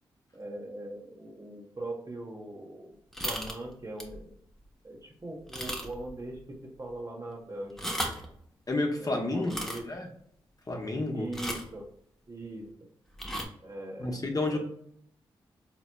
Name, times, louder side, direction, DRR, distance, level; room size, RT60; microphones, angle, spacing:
voice 1, 0.3-3.0 3.2-4.3 4.8-8.1 9.0-10.0 11.1-11.9 12.3-12.7 13.6-14.6, right 1 dB, 35° right, 0 dB, 1.1 m, -41 dB
sound 1, 3.1-3.6 4.0-4.2 4.6-4.7 5.5-6.1 6.4-6.5 7.6-8.3 9.4-9.8 11.3-11.7 13.1-13.5, equal, 5° left, 0.9 m, -35 dB
voice 2, 8.7-9.5 9.8-10.1 10.7-11.3 14.0-14.6, left 2 dB, 40° left, 1 dB, 1.0 m, -30 dB
4.0 x 3.0 x 2.2 m, 0.67 s
supercardioid pair, 40°, 10 cm